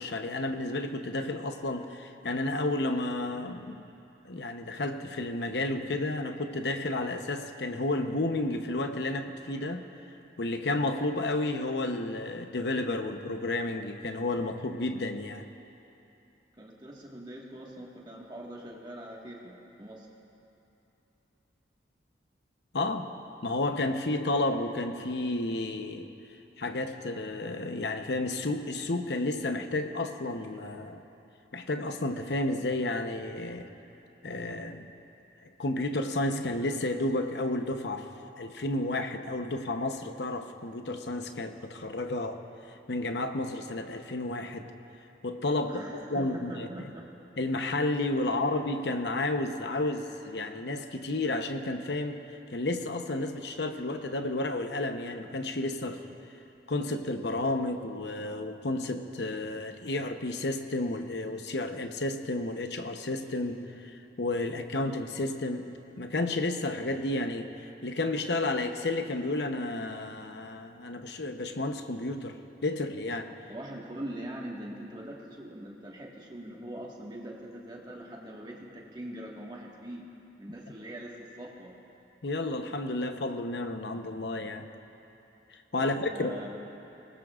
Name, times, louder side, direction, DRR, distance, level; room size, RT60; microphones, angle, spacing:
voice 1, 0.0-3.9 4.2-9.9 10.4-15.4 22.7-23.1 23.4-26.1 26.6-31.0 31.5-33.7 34.2-34.9 35.4-38.1 38.4-42.4 42.9-44.7 45.2-45.8 46.1-46.7 47.4-52.2 52.5-56.0 56.7-65.7 66.0-72.4 72.6-73.3 82.2-84.7 85.5-86.4, left 2 dB, 70° left, 6 dB, 0.8 m, -31 dB
voice 2, 16.6-20.1 45.7-47.1 73.5-80.1 80.4-81.7 85.8-86.5, right 1 dB, 25° right, -2 dB, 1.6 m, -42 dB
22.5 x 19.0 x 2.5 m, 2.8 s
head